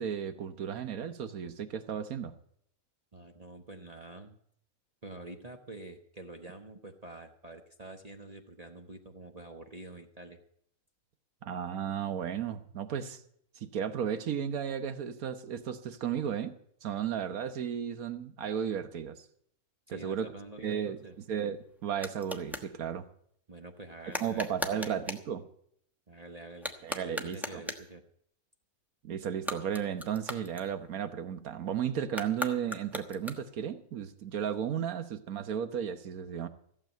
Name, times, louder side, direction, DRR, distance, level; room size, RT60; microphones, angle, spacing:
voice 1, 0.0-2.3 11.4-13.2 13.6-16.6 16.8-19.2 19.9-20.3 20.6-21.0 21.3-23.1 24.2-25.5 26.8-27.6 29.0-36.5, right 8 dB, 70° right, 11 dB, 1.4 m, -34 dB
voice 2, 3.1-4.4 5.0-10.4 19.9-21.2 23.5-25.0 26.1-26.7 27.0-28.0, right 2 dB, 30° right, 4 dB, 1.0 m, -47 dB
sound 1, 21.0-22.7 24.1-25.3 26.5-28.0 29.3-31.1 32.1-33.7, left 1 dB, ahead, 0.9 m, -39 dB
15.0 x 7.5 x 9.0 m, 0.67 s
omnidirectional pair, 1.6 m